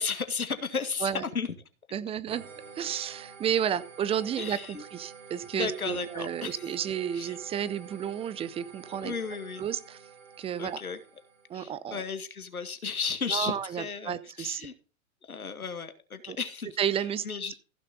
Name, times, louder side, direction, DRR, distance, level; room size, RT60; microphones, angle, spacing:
voice 1, 0.0-1.5 4.4-4.8 5.5-6.7 7.1-7.4 9.0-9.6 10.6-11.0 11.5-14.7 15.2-16.7 17.2-17.5, left 5 dB, 90° left, 9 dB, 1.9 m, -34 dB
voice 2, 1.9-2.5 2.8-9.1 9.6-10.0 10.4-10.8 11.5-12.0 13.3-14.7 16.3-16.4 16.8-17.3, right 9 dB, 15° right, 17 dB, 0.6 m, -32 dB
sound 1, 2.3-11.6, right 5 dB, 65° right, 4.3 m, -49 dB
15.5 x 6.7 x 4.1 m, 0.37 s
hypercardioid pair, 115°, 42 cm